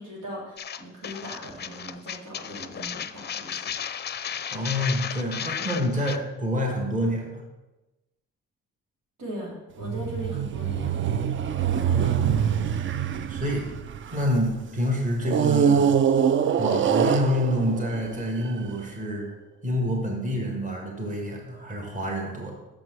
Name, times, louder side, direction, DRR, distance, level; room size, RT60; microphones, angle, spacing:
voice 1, 0.0-3.6 9.2-11.1, equal, 90° right, -4 dB, 3.0 m, -39 dB
sound 1, 0.6-6.2, left 8 dB, 35° left, 0.5 m, -34 dB
voice 2, 4.5-7.4 11.7-12.4 13.3-13.7 14.1-15.9 16.6-19.3 19.6-22.5, equal, 25° right, 0 dB, 1.9 m, -27 dB
sound 2, 9.8-14.5 15.2-18.7, right 8 dB, 40° right, 0.4 m, -24 dB
6.5 x 6.1 x 6.2 m, 1.1 s
cardioid pair, 90°, 30 cm